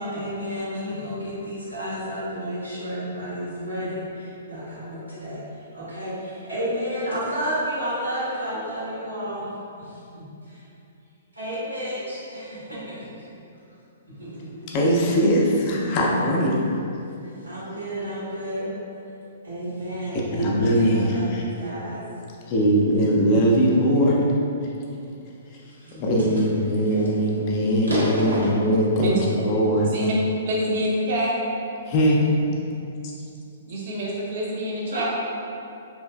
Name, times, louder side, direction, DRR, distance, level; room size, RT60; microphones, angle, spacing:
voice 1, 0.0-9.5 9.8-10.6 11.3-13.3 14.2-14.7 17.2-18.7 19.4-22.0 22.9-23.5 25.6-26.3 26.9-27.0 27.9-28.5 34.9-35.1, equal, 75° right, -9 dB, 1.1 m, -31 dB
voice 2, 14.7-16.6 20.3-21.4 22.5-24.2 24.6-24.7 25.5-25.6 26.0-29.9 31.9-32.4 33.0-33.1, equal, 35° left, -3 dB, 0.4 m, -21 dB
voice 3, 30.4-31.3 33.7-35.1, equal, 45° right, -4 dB, 0.5 m, -26 dB
3.0 x 2.7 x 2.2 m, 2.7 s
figure-of-eight pair, 115°, 0 cm